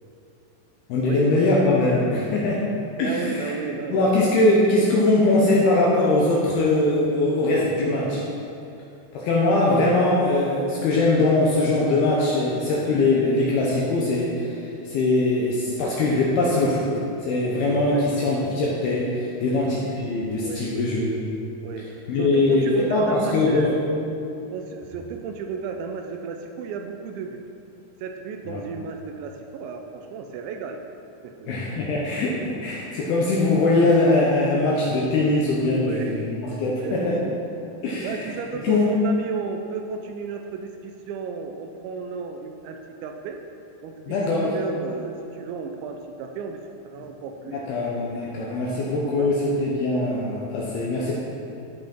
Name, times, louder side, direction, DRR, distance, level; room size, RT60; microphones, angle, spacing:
voice 1, 0.9-2.7 3.0-3.5 3.9-8.3 9.1-16.9 17.2-21.2 22.1-23.8 28.5-28.6 31.5-37.2 37.8-38.2 38.6-38.9 44.1-44.5 47.5-51.2, left 2 dB, 75° left, -4 dB, 2.4 m, -21 dB
voice 2, 3.0-4.1 17.8-18.1 19.4-19.6 20.4-20.9 21.6-21.9 22.2-23.8 24.5-27.4 28.0-30.8 31.2-31.5 35.7-37.5 38.0-43.4 43.8-47.6 49.2-49.3, right 5 dB, 80° right, 4 dB, 2.8 m, -34 dB
13.5 x 5.6 x 4.4 m, 2.7 s
omnidirectional pair, 5.5 m